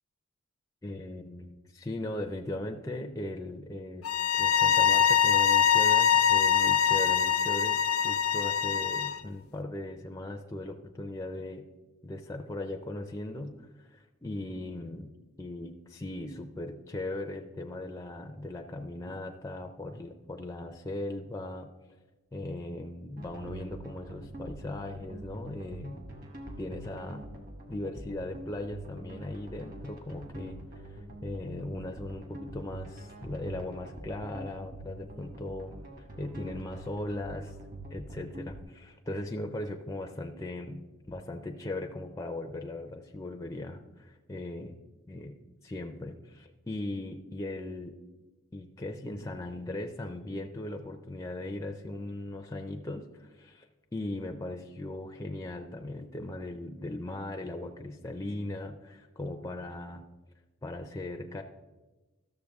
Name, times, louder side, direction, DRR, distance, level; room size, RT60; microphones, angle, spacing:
voice 1, 0.8-7.8 8.0-11.6 12.0-15.1 15.4-21.7 22.3-26.0 26.6-27.2 27.7-30.6 30.9-35.8 36.2-37.5 37.9-44.8 45.1-45.4 45.6-47.9 48.5-60.0 60.6-61.4, left 1 dB, 15° left, 4 dB, 0.4 m, -38 dB
sound 1, 4.0-9.2, left 8 dB, 80° left, 0.5 m, -24 dB
sound 2, 23.2-38.6, right 1 dB, 40° right, 1.2 m, -45 dB
13.0 x 6.8 x 3.5 m, 1.2 s
head